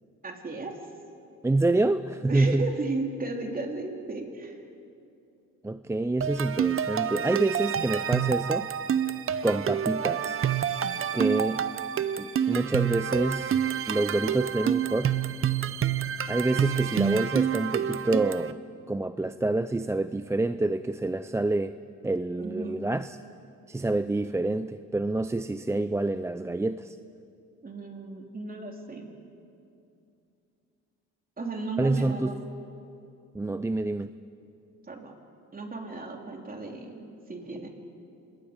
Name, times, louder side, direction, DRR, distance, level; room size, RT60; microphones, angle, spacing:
voice 1, 0.2-0.8 2.3-4.6 22.3-22.8 27.6-29.1 31.4-32.4 34.9-35.1 35.5-37.7, right 3 dB, 30° right, 2 dB, 3.1 m, -35 dB
voice 2, 1.4-2.7 5.6-8.7 9.4-10.4 11.1-11.7 12.2-13.6 13.9-15.1 16.3-18.6 18.9-21.8 22.0-23.2 23.7-27.0 31.8-32.4 33.3-34.1, right 2 dB, 10° right, 11 dB, 0.4 m, -27 dB
sound 1, 6.2-18.5, right 9 dB, 45° right, 0.8 m, -28 dB
27.0 x 20.0 x 5.1 m, 2.6 s
cardioid pair, 90°, 30 cm